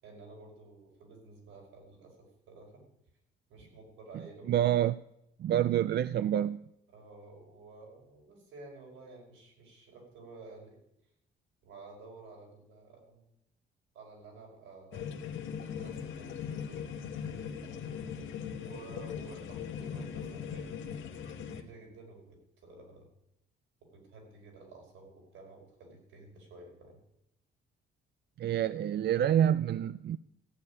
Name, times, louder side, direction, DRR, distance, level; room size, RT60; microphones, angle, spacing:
voice 1, 0.0-2.9 3.5-4.6 5.5-5.7 6.9-10.8 11.6-13.3 13.9-15.1 15.6-16.9 17.6-17.9 18.6-23.1 23.8-27.0, right 3 dB, 85° right, 5.3 m, -52 dB
voice 2, 4.5-5.0 5.4-6.6 28.4-30.2, right 11 dB, 55° right, 0.4 m, -27 dB
sound 1, 14.9-21.6, left 7 dB, 75° left, 1.5 m, -40 dB
14.5 x 7.0 x 9.6 m
cardioid pair, 90°, 20 cm